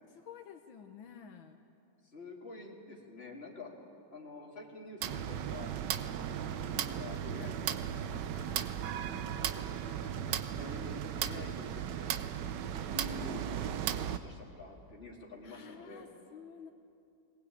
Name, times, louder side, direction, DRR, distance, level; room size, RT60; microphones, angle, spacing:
voice 1, 0.1-1.6 6.1-6.5 8.3-9.3 10.5-10.7 12.6-12.9 15.4-16.7, left 7 dB, 80° left, 4 dB, 1.8 m, -52 dB
voice 2, 2.1-3.7 4.1-5.7 6.1-8.3 9.1-12.1 12.8-13.7 14.2-16.1, left 3 dB, 30° left, -2 dB, 3.1 m, -48 dB
sound 1, 5.0-14.2, right 9 dB, 70° right, 1.3 m, -36 dB
21.0 x 19.5 x 8.7 m, 2.6 s
omnidirectional pair, 2.2 m